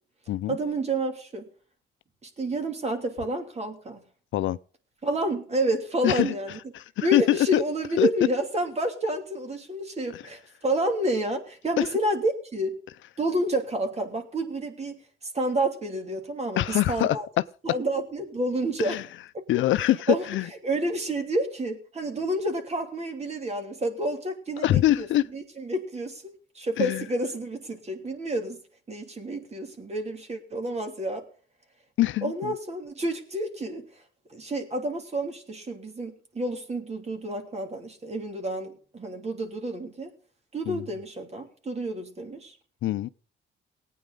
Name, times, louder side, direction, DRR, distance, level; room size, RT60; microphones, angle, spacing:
voice 1, 0.5-1.4 2.2-4.0 5.0-6.6 7.0-12.8 13.2-15.0 15.3-17.3 17.6-19.0 20.1-20.2 20.6-25.1 25.3-28.6 28.9-31.2 32.2-33.8 34.3-40.1 40.5-42.6, right 1 dB, 35° right, 3.0 m, -29 dB
voice 2, 6.0-6.3 6.7-7.6 8.0-8.1 10.1-10.2 16.6-17.2 18.8-19.0 19.5-20.5 24.6-25.3 26.8-27.0 32.0-32.5 40.7-40.8 42.8-43.1, left 14 dB, 75° left, 0.6 m, -24 dB
18.5 x 9.3 x 3.8 m
cardioid pair, 90°, 20 cm